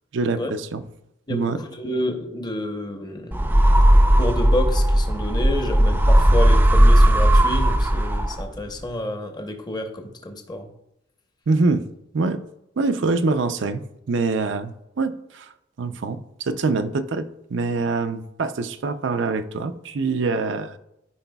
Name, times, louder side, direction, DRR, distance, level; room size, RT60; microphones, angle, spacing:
voice 1, 0.1-0.8 1.3-1.6 11.5-11.8 12.1-12.4 12.8-13.8 14.1-15.5 15.8-20.8, right 3 dB, 65° right, 9 dB, 0.5 m, -24 dB
voice 2, 1.3-3.6 4.2-10.7 15.8-16.0, left 1 dB, 20° left, 4 dB, 0.9 m, -29 dB
sound 1, 3.3-8.6, right 1 dB, 10° right, 0.4 m, -16 dB
13.0 x 4.9 x 2.3 m, 0.84 s
head